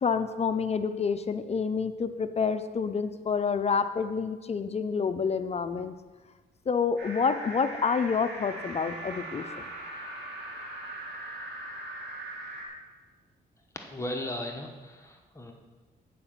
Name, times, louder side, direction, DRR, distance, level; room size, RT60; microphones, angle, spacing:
voice 1, 0.0-5.9 6.7-9.6, left 5 dB, 35° left, 10 dB, 0.5 m, -28 dB
sound 1, 7.0-12.7, right 1 dB, 80° right, 2.2 m, -40 dB
voice 2, 13.7-15.5, left 1 dB, 15° left, 2 dB, 1.1 m, -36 dB
8.5 x 5.0 x 7.2 m, 1.3 s
cardioid pair, 95°, 18 cm